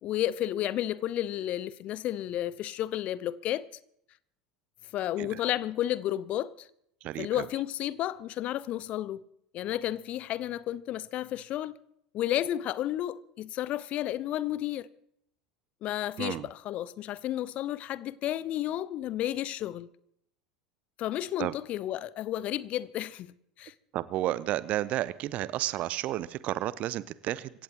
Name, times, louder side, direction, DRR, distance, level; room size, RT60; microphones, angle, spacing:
voice 1, 0.0-3.6 4.9-6.7 7.2-9.2 9.5-11.8 12.1-14.9 15.8-19.9 21.0-23.3 23.6-23.7, left 13 dB, 40° left, 0.6 m, -32 dB
voice 2, 7.0-7.4 16.2-16.5 21.4-21.5 23.9-27.5, right 14 dB, 40° right, 0.6 m, -32 dB
25.5 x 16.0 x 3.0 m
figure-of-eight pair, 75°, 3 cm